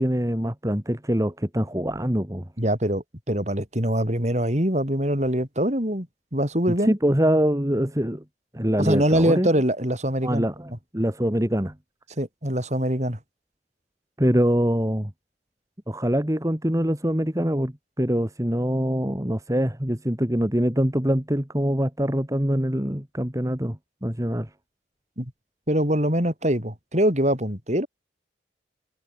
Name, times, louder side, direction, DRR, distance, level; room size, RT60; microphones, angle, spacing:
voice 1, 0.0-2.5 6.8-8.2 8.5-9.5 10.2-11.7 14.2-15.1 15.9-24.5, equal, 15° right, 2.2 m, -24 dB
voice 2, 2.6-6.1 6.3-6.9 8.8-10.4 12.2-13.2 25.2-25.3 25.7-27.9, right 1 dB, 40° right, 6.5 m, -23 dB
head